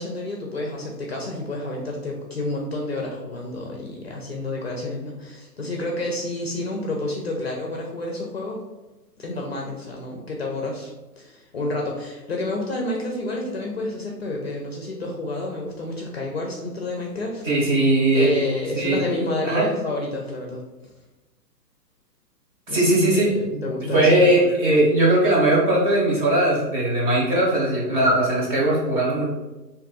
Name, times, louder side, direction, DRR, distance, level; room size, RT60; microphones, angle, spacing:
voice 1, 0.0-8.6 9.2-17.4 18.1-20.6 22.7-24.6 24.9-25.0, left 2 dB, 40° left, 0 dB, 0.5 m, -30 dB
voice 2, 17.4-18.4 18.7-19.0 19.4-19.7 22.7-29.3, right 1 dB, 30° right, -4 dB, 0.9 m, -19 dB
2.7 x 2.5 x 3.6 m, 1.1 s
hypercardioid pair, 140°, 50 cm